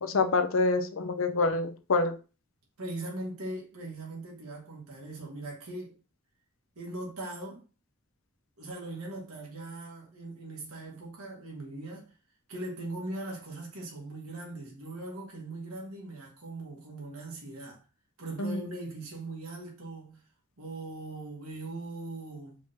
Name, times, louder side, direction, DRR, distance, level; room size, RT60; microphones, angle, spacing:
voice 1, 0.0-2.1 18.4-18.6, left 3 dB, 70° left, 0.6 m, -26 dB
voice 2, 2.8-6.0 6.8-7.6 8.6-12.1 12.5-17.8 18.2-20.2 20.6-22.6, right 2 dB, 90° right, 1.8 m, -40 dB
4.9 x 2.7 x 3.6 m
head